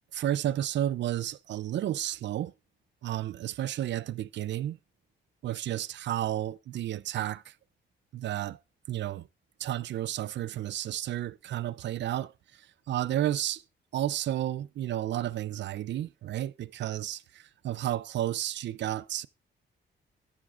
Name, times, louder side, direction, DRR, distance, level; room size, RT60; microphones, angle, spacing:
voice 1, 0.1-2.5 3.0-4.8 5.4-7.5 8.1-8.6 8.9-9.3 9.6-13.6 13.9-19.3, right 12 dB, 70° right, 0.5 m, -32 dB
13.0 x 9.6 x 2.4 m
cardioid pair, 125°, 19 cm